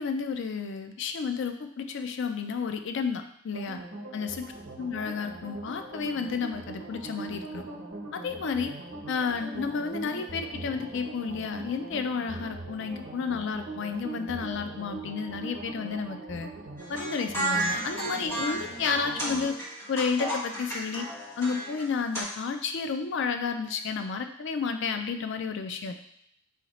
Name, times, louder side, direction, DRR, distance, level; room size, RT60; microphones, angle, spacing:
voice 1, 0.0-3.8 4.1-4.4 4.8-7.6 8.1-8.7 9.1-16.5 16.9-19.6 19.9-21.1 21.4-25.9, left 5 dB, 60° left, 7 dB, 0.4 m, -31 dB
sound 1, 3.5-19.5, right 2 dB, 80° right, 0.8 m, -41 dB
sound 2, 16.8-22.2, right 1 dB, 15° left, 1.1 m, -33 dB
4.2 x 2.9 x 4.1 m, 0.71 s
head